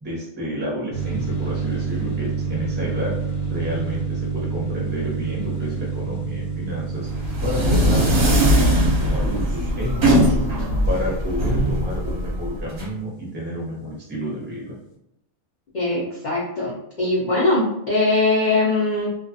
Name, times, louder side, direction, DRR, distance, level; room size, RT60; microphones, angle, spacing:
voice 1, 0.0-3.2 3.5-7.1 7.4-10.5 10.9-14.8, equal, 10° right, -4 dB, 0.6 m, -30 dB
sound 1, 0.9-13.4, right 6 dB, 85° left, 1.1 m, -29 dB
sound 2, 7.1-12.9, equal, 60° right, 0.8 m, -20 dB
voice 2, 15.7-16.7 17.0-19.1, left 2 dB, 55° left, -7 dB, 0.5 m, -21 dB
2.4 x 2.3 x 2.5 m, 0.81 s
omnidirectional pair, 1.5 m